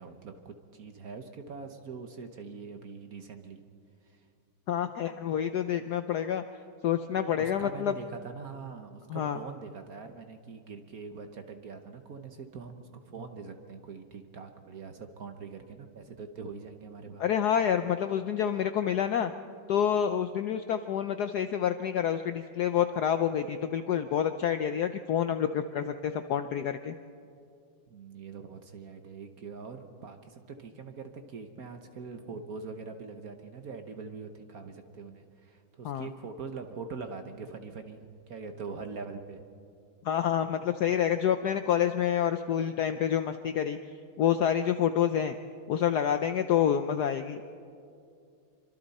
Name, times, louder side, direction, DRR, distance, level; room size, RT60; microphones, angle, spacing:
voice 1, 0.0-3.6 4.0-4.2 7.3-17.2 27.9-38.0 38.3-39.4, right 5 dB, 50° right, 6 dB, 1.3 m, -43 dB
voice 2, 4.7-6.4 6.8-7.9 9.1-9.4 17.2-19.3 19.7-26.9 35.8-36.1 40.0-43.8 44.2-45.4 45.7-47.4, left 9 dB, 70° left, 9 dB, 0.9 m, -28 dB
26.5 x 24.5 x 4.2 m, 2.4 s
omnidirectional pair, 2.3 m